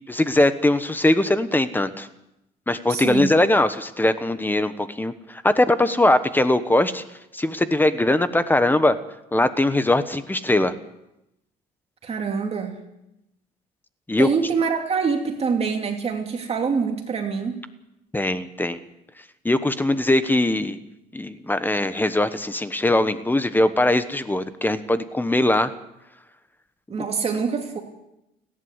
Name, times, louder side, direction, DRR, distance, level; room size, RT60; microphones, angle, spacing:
voice 1, 0.1-2.1 2.7-7.0 7.3-8.9 9.3-10.7 14.1-14.3 18.1-18.8 19.4-20.8 21.1-25.7 27.0-27.1, left 1 dB, 10° left, 12 dB, 1.2 m, -21 dB
voice 2, 2.9-3.3 12.0-12.8 14.2-17.6 26.9-27.8, right 5 dB, 35° right, 3 dB, 2.8 m, -25 dB
30.0 x 11.0 x 8.2 m, 0.87 s
cardioid pair, 110°, 17 cm